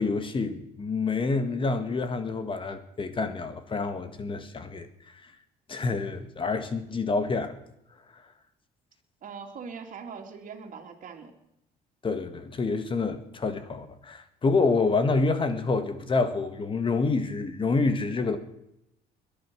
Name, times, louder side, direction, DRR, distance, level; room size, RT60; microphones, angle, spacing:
voice 1, 0.0-4.9 5.7-7.5 12.0-18.4, left 3 dB, 30° left, 1.7 m, -27 dB
voice 2, 9.2-11.3, right 5 dB, 50° right, 3.1 m, -41 dB
21.5 x 10.5 x 6.3 m
cardioid pair, 110°, 17 cm